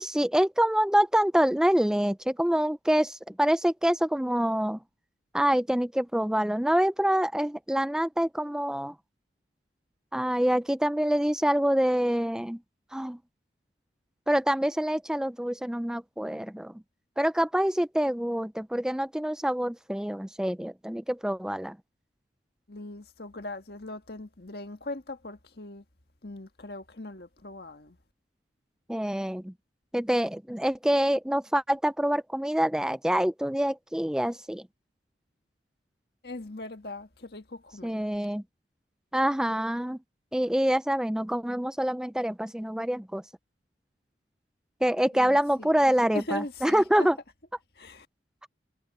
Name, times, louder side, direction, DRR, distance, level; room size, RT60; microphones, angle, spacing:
voice 1, 0.0-4.8 5.3-8.9 10.1-12.6 12.9-13.2 14.3-16.7 17.2-21.8 28.9-29.5 29.9-34.6 37.8-38.4 39.1-40.0 40.3-43.2 44.8-47.2, equal, 5° right, 0.3 m, -26 dB
voice 2, 22.7-25.8 26.2-28.0 36.2-38.0 45.1-47.1 47.8-48.1, left 2 dB, 55° left, 1.9 m, -40 dB
head